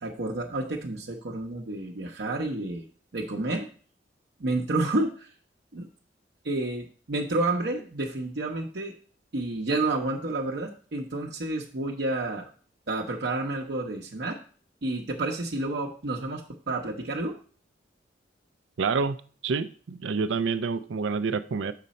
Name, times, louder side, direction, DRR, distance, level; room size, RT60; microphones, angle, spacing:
voice 1, 0.0-2.9 3.1-3.7 4.4-5.3 5.7-5.9 6.4-8.9 9.3-12.5 12.9-14.4 14.8-17.3, right 2 dB, 65° right, 0.8 m, -30 dB
voice 2, 18.8-19.2 19.4-21.7, right 5 dB, 90° right, 0.5 m, -27 dB
6.7 x 5.2 x 4.2 m
head